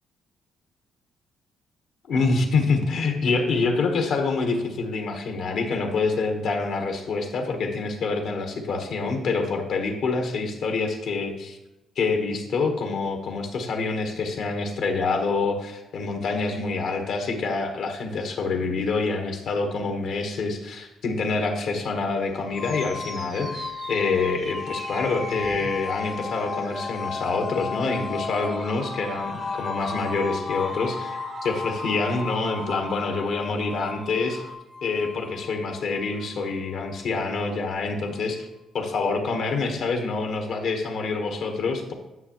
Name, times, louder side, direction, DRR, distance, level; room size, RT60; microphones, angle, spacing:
voice 1, 2.1-11.6 12.0-34.4 34.8-38.5 38.7-41.9, left 4 dB, 75° left, 4 dB, 1.1 m, -26 dB
sound 1, 22.2-34.5, right 4 dB, 45° right, 0.7 m, -41 dB
sound 2, 22.5-37.5, left 5 dB, 35° left, 0.5 m, -35 dB
9.5 x 6.2 x 3.0 m, 0.97 s
cardioid pair, 90°, 0 cm